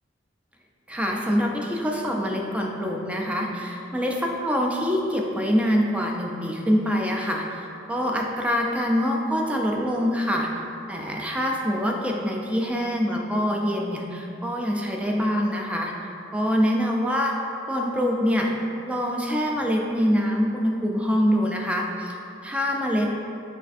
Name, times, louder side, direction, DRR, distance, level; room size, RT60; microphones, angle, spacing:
voice 1, 0.9-10.5 10.9-15.9 16.3-17.4 17.7-18.5 18.8-22.2 22.4-23.1, equal, 5° right, 0 dB, 0.4 m, -25 dB
6.4 x 3.3 x 2.5 m, 2.8 s
head